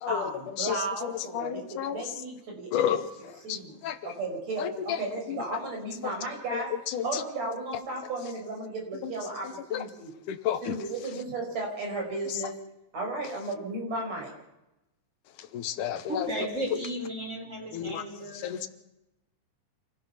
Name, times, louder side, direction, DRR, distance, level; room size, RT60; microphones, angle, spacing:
voice 1, 0.1-3.0 3.4-3.7 4.0-10.1 10.6-12.6 12.9-14.3, right 2 dB, 60° right, 1 dB, 6.2 m, -34 dB
voice 2, 0.6-2.0 2.7-3.0 3.5-4.0 4.6-5.0 5.3-5.4 6.5-7.2 9.0-9.1 9.7-9.8 10.3-10.8 15.5-16.3 17.7-18.0 18.4-18.7, left 10 dB, 85° left, 10 dB, 2.6 m, -31 dB
voice 3, 16.1-18.7, right 1 dB, 25° right, 1 dB, 5.0 m, -35 dB
27.0 x 17.0 x 5.8 m, 0.90 s
omnidirectional pair, 3.5 m